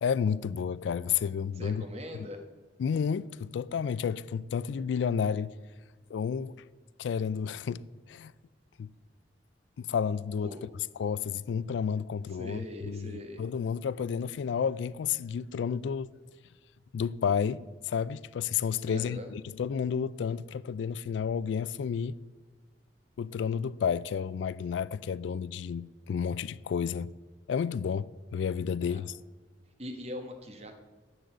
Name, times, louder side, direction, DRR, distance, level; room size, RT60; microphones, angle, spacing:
voice 1, 0.0-1.8 2.8-5.6 6.1-6.6 7.0-7.8 8.1-8.3 8.8-8.9 9.8-10.6 11.0-16.1 16.9-22.2 23.2-27.1 27.5-29.2, left 7 dB, 80° left, 0.3 m, -31 dB
voice 2, 1.6-2.4 10.4-10.7 12.3-13.5 18.9-19.3 28.8-29.0 29.8-30.8, equal, 35° right, 1.1 m, -41 dB
11.5 x 4.0 x 7.5 m
head